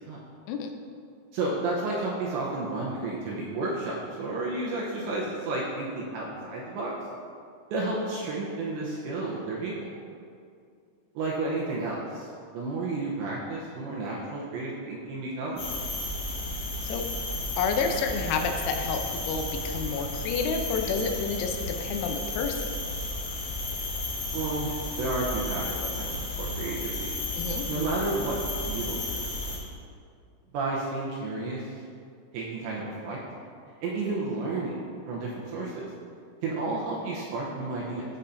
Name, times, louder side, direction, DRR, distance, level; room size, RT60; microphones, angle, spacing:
voice 1, 1.3-6.9 7.7-9.7 11.2-12.3 12.5-15.6 24.3-24.7 25.0-27.1 27.7-28.3 28.7-29.1 30.5-31.7 32.3-33.2 33.8-35.9 36.4-38.0, right 2 dB, 80° right, -4 dB, 2.7 m, -31 dB
sound 1, 15.6-29.6, left 2 dB, 60° left, 1.9 m, -33 dB
voice 2, 17.6-19.0 19.3-22.8 27.4-27.7, left 5 dB, 85° left, 5 dB, 3.4 m, -29 dB
15.0 x 5.6 x 2.6 m, 2.3 s
omnidirectional pair, 6.0 m